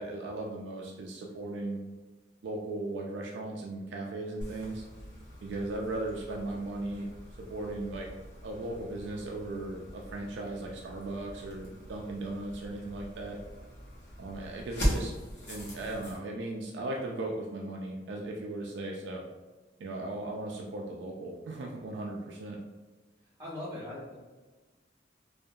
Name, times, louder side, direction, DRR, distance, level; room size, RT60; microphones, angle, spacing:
voice 1, 0.0-1.8 2.4-4.8 5.4-7.1 7.5-8.1 8.4-13.4 14.2-15.1 15.5-19.2 19.8-22.6, right 2 dB, 70° right, 0 dB, 0.3 m, -37 dB
sound 1, 4.4-16.2, equal, 70° left, 0.9 m, -40 dB
voice 2, 23.2-24.2, left 1 dB, 15° right, -8 dB, 1.3 m, -40 dB
2.7 x 2.4 x 2.2 m, 1.3 s
head